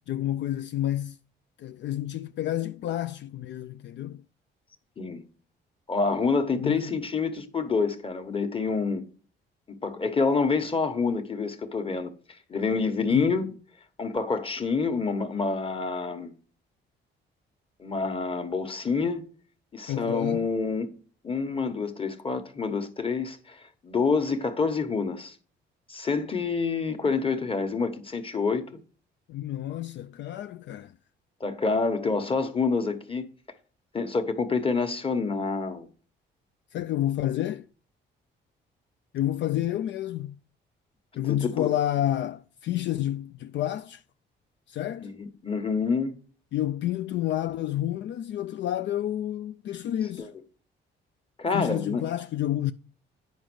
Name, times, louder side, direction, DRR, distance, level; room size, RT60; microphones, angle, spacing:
voice 1, 0.1-1.2 1.6-4.2 6.6-6.8 13.1-13.4 19.9-20.5 29.3-30.9 36.7-37.7 39.1-40.4 41.2-44.0 44.7-45.2 46.5-50.3 51.5-52.7, left 12 dB, 65° left, 0.4 m, -29 dB
voice 2, 5.9-9.0 9.7-12.1 12.5-13.5 14.0-16.3 17.8-19.3 19.7-20.9 21.2-23.6 23.8-25.3 25.9-28.8 31.4-33.2 33.9-35.9 41.3-41.7 45.0-46.1 50.2-50.3 51.4-52.0, left 4 dB, 25° left, 1.3 m, -27 dB
9.3 x 5.3 x 6.2 m
cardioid pair, 90°, 20 cm